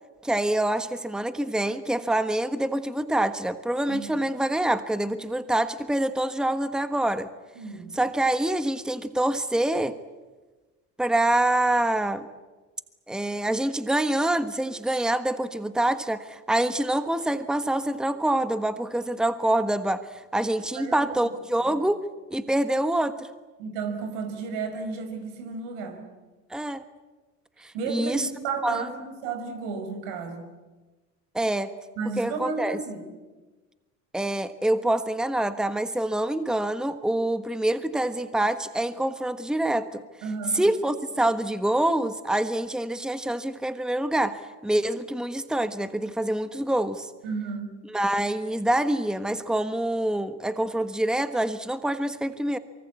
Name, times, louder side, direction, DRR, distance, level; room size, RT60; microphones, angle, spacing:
voice 1, 0.2-7.3 7.9-9.9 11.0-12.3 13.1-22.0 22.3-23.3 26.5-26.8 27.6-28.3 28.6-28.8 31.3-31.7 32.2-32.8 34.1-40.0 40.5-47.1 47.9-52.6, right 1 dB, ahead, 11 dB, 1.4 m, -26 dB
voice 2, 7.6-7.9 20.8-21.0 21.5-21.8 23.6-26.0 27.7-30.5 32.0-33.1 40.2-40.7 47.2-47.7, right 4 dB, 80° right, 7 dB, 5.2 m, -33 dB
24.5 x 23.5 x 8.4 m, 1.2 s
hypercardioid pair, 75°, 35 cm